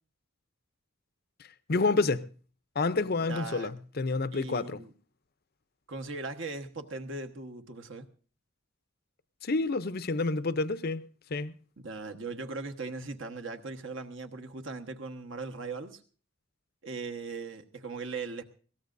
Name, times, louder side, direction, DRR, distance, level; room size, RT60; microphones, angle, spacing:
voice 1, 1.7-2.3 2.8-4.8 9.4-11.0 11.3-11.5, left 3 dB, 45° left, 0.6 m, -28 dB
voice 2, 3.3-3.7 4.3-4.9 5.9-8.1 11.8-16.0 16.8-18.4, right 3 dB, 65° right, 1.3 m, -39 dB
21.5 x 18.0 x 2.6 m
head